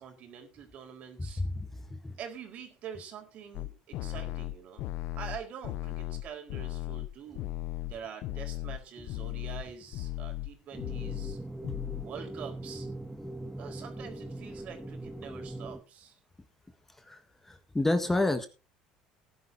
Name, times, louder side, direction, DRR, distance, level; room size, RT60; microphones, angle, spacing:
voice 1, 0.0-1.4 2.2-4.8 5.1-7.5 7.9-11.4 12.0-12.9 13.6-16.2, right 8 dB, 55° right, 4 dB, 4.2 m, -45 dB
voice 2, 1.5-2.1 17.0-18.5, left 2 dB, 10° left, 8 dB, 1.6 m, -30 dB
sound 1, 3.5-8.8 9.1-9.7 9.9-10.5 10.8-11.4 11.6-12.0, left 16 dB, 70° left, 0.6 m, -36 dB
sound 2, 10.7-15.8, right 1 dB, 5° right, 1.7 m, -41 dB
18.5 x 11.0 x 2.7 m, 0.30 s
supercardioid pair, 90°, 3 cm